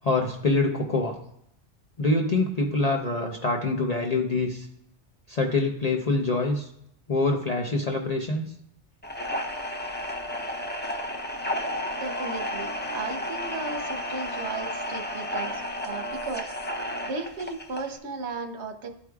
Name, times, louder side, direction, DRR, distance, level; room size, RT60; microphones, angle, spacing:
voice 1, 0.0-1.1 2.0-4.7 5.3-6.7 7.1-8.5, left 3 dB, 40° left, 1 dB, 0.7 m, -25 dB
sound 1, 9.0-18.0, left 1 dB, 15° left, 0.3 m, -32 dB
voice 2, 12.0-16.5 17.0-18.9, right 3 dB, 70° right, 6 dB, 1.1 m, -35 dB
12.5 x 4.6 x 2.3 m, 0.75 s
omnidirectional pair, 1.2 m